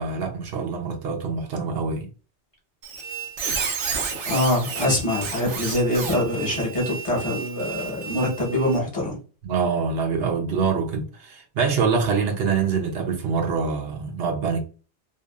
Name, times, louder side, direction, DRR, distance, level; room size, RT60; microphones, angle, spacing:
voice 1, 0.0-2.1 9.4-14.6, right 5 dB, 65° right, 0.8 m, -25 dB
Squeak, 2.8-8.8, right 6 dB, 85° right, 0.9 m, -31 dB
voice 2, 4.2-9.2, left 1 dB, 30° left, 1.1 m, -24 dB
2.8 x 2.4 x 2.3 m
omnidirectional pair, 1.2 m